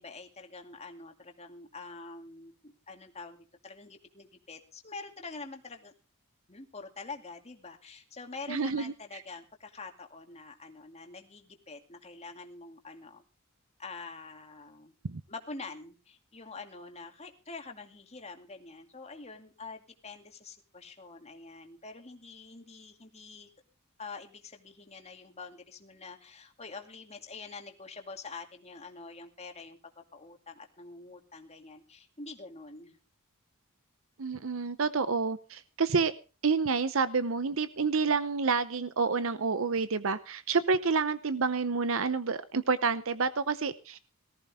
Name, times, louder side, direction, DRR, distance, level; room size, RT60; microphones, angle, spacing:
voice 1, 0.0-5.9 6.5-13.2 13.8-14.9 15.3-23.5 24.0-33.0, left 3 dB, 30° left, 4 dB, 2.3 m, -46 dB
voice 2, 8.5-8.9 15.0-15.2 34.2-36.1 36.4-44.0, right 4 dB, 65° right, 14 dB, 0.7 m, -29 dB
18.5 x 14.5 x 3.5 m, 0.34 s
head